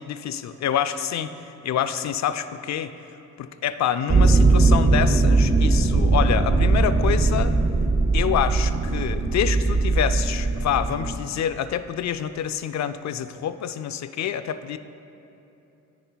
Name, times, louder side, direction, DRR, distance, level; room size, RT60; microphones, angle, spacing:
voice 1, 0.0-1.3 1.6-2.9 3.4-7.6 8.1-14.8, left 9 dB, 60° left, 12 dB, 0.4 m, -27 dB
sound 1, 4.1-11.2, right 3 dB, 30° right, 0.7 m, -20 dB
9.6 x 9.2 x 2.3 m, 2.9 s
cardioid pair, 65°, 32 cm